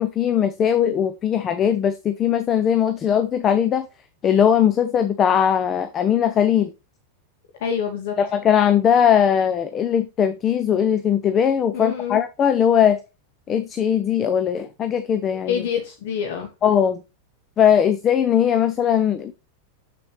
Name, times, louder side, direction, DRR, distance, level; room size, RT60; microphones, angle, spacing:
voice 1, 0.0-3.9 4.2-6.7 8.2-13.0 13.5-15.6 16.6-17.0 17.6-19.3, left 8 dB, 25° left, 0.7 m, -19 dB
voice 2, 7.6-8.2 11.7-12.2 15.3-16.5, left 7 dB, 55° left, 1.2 m, -26 dB
7.0 x 6.9 x 3.1 m
figure-of-eight pair, 90°, 0 cm